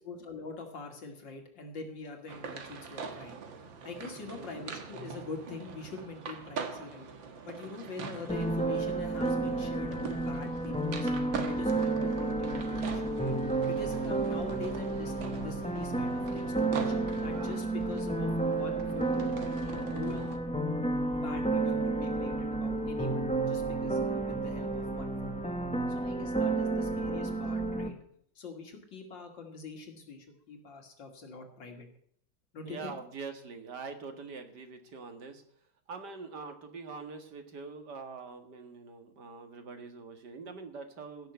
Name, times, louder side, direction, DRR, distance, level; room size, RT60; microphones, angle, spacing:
voice 1, 0.0-3.4 3.8-7.1 7.4-11.1 11.5-13.3 13.6-19.3 19.7-20.3 21.1-25.3 25.9-27.9 28.3-31.9 32.5-32.9, left 4 dB, 75° left, 4 dB, 3.2 m, -44 dB
sound 1, 2.3-20.4, right 5 dB, 90° right, 2.3 m, -43 dB
sound 2, 8.3-27.9, right 2 dB, 5° left, 1.1 m, -31 dB
voice 2, 32.6-35.4 35.9-41.3, right 4 dB, 60° right, 7 dB, 2.4 m, -44 dB
16.0 x 6.8 x 7.9 m, 0.63 s
omnidirectional pair, 2.0 m